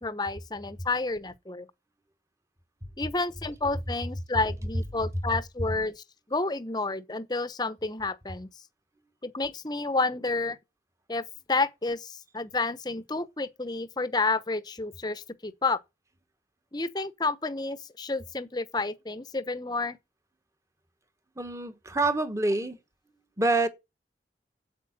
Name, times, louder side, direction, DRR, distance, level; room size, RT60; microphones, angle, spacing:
voice 1, 0.0-1.7 3.0-8.5 9.2-10.6 11.1-11.2 11.5-15.8 16.7-20.0, left 3 dB, 25° left, 0.8 m, -30 dB
voice 2, 21.4-22.8 23.4-23.7, right 2 dB, 15° right, 1.2 m, -26 dB
8.5 x 8.2 x 8.8 m
head